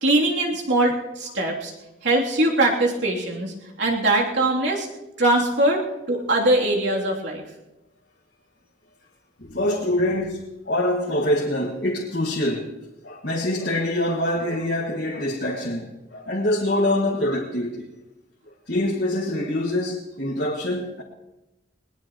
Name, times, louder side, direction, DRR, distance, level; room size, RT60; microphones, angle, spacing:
voice 1, 0.0-1.7 2.0-4.9 5.2-5.8 6.1-7.4, right 1 dB, 65° right, 3.1 m, -21 dB
voice 2, 9.4-12.7 13.0-17.9 18.7-21.0, left 1 dB, 55° left, 1.9 m, -25 dB
20.5 x 19.5 x 3.1 m
head